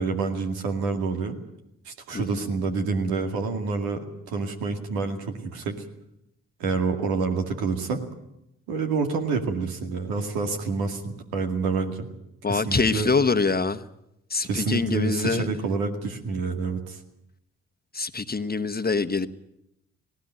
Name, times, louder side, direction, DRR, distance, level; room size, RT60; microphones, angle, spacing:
voice 1, 0.0-1.4 1.9-5.8 6.6-8.0 8.7-12.1 12.5-13.1 14.4-17.0, right 4 dB, 85° right, 2.3 m, -28 dB
voice 2, 2.1-2.5 12.4-13.8 14.3-15.5 17.9-19.3, left 4 dB, 25° left, 1.2 m, -25 dB
19.0 x 17.5 x 9.2 m
hypercardioid pair, 45°, 35 cm